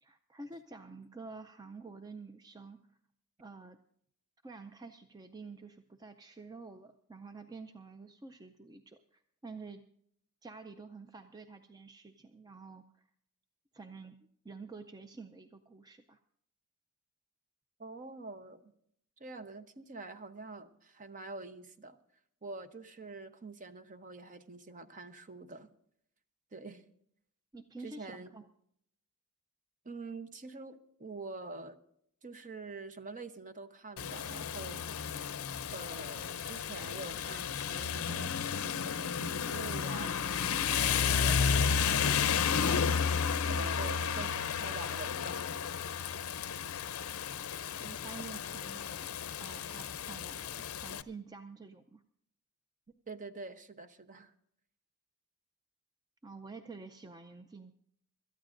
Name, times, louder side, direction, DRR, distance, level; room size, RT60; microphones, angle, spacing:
voice 1, 0.0-2.8 3.4-3.8 4.4-9.8 10.4-13.1 13.7-14.2 14.4-16.2 27.5-28.5 47.8-49.1 49.4-52.0 56.2-57.7, right 4 dB, 20° right, 8 dB, 0.4 m, -49 dB
voice 2, 17.8-18.7 19.2-22.0 22.4-25.7 26.5-26.8 27.8-28.3 29.8-31.8 32.2-34.8 35.7-38.4 38.6-43.1 43.4-45.5 53.1-54.3, right 3 dB, 35° right, 10 dB, 0.8 m, -46 dB
Rain, 34.0-51.0, left 7 dB, 70° left, 0.5 m, -32 dB
26.5 x 13.0 x 2.5 m, 0.70 s
head